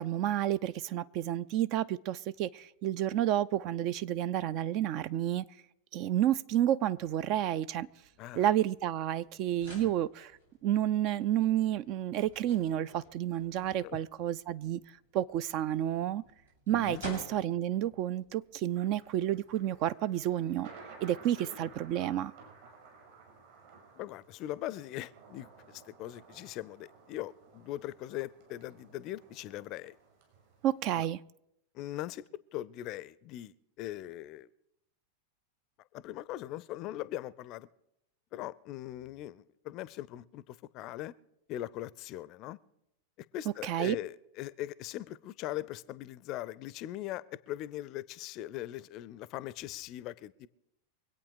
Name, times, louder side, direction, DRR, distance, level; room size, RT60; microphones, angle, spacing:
voice 1, 0.0-5.4 5.9-7.9 8.3-10.3 10.6-14.8 15.1-16.2 16.7-20.7 21.0-22.3 30.6-31.2 43.6-44.0, right 12 dB, 40° right, 0.4 m, -30 dB
sound 1, 6.8-19.7, left 1 dB, 90° right, 5.7 m, -53 dB
voice 2, 16.7-17.0 21.4-21.7 24.0-30.0 31.0-31.1 31.7-32.2 32.5-34.5 35.9-37.7 38.3-41.1 41.5-42.6 43.3-50.5, left 14 dB, 40° left, 0.5 m, -40 dB
Thunder, 18.7-31.0, right 5 dB, 60° right, 5.5 m, -55 dB
24.5 x 8.6 x 4.9 m
figure-of-eight pair, 90°, 0 cm